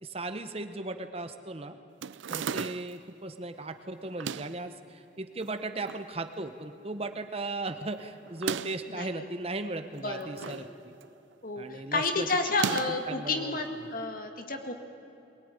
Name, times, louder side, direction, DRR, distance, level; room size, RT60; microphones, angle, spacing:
voice 1, 0.0-1.8 2.3-10.9 11.6-12.3 12.6-12.8 13.1-13.9, right 2 dB, 30° right, 8 dB, 0.9 m, -37 dB
sound 1, 2.0-3.0 4.1-4.6 5.4-6.1 6.4-6.5 6.7-6.8 8.3-8.9 9.9-10.7 11.0-11.3 12.5-13.1, right 7 dB, 75° right, 0.5 m, -35 dB
voice 2, 8.9-9.3 10.0-10.6 11.4-14.7, left 3 dB, 45° left, 5 dB, 2.0 m, -31 dB
22.5 x 19.0 x 9.9 m, 2.9 s
head